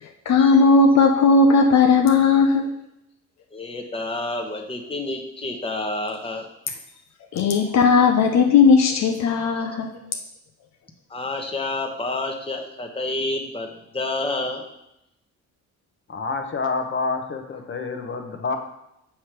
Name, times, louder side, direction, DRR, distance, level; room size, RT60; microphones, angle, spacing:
voice 1, 0.0-2.7 7.3-9.9, left 4 dB, 65° left, 3 dB, 0.7 m, -16 dB
voice 2, 3.5-6.5 11.1-14.6, left 2 dB, 20° left, 2 dB, 1.1 m, -29 dB
voice 3, 16.1-18.6, left 4 dB, 40° left, 5 dB, 1.0 m, -28 dB
7.2 x 3.3 x 5.9 m, 0.82 s
cardioid pair, 90°, 30 cm